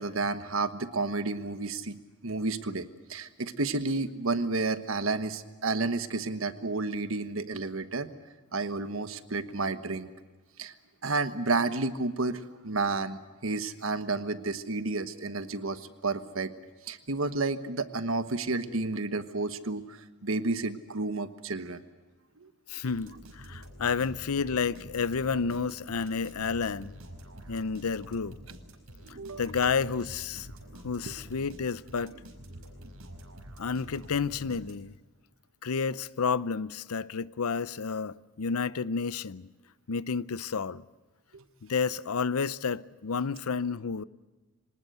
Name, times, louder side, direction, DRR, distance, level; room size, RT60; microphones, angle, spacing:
voice 1, 0.0-2.0 2.2-8.1 8.5-10.1 10.6-10.7 11.0-16.5 16.8-21.8 22.4-22.5 29.2-29.4 41.3-41.4, right 3 dB, 65° right, 1.3 m, -31 dB
voice 2, 22.7-26.9 27.5-28.4 29.4-30.5 30.8-32.1 33.6-34.9 35.6-39.5 39.9-40.8 41.6-44.0, left 5 dB, 85° left, 0.6 m, -30 dB
sound 1, 22.9-35.1, equal, 80° right, 5.0 m, -47 dB
25.0 x 19.5 x 8.0 m
head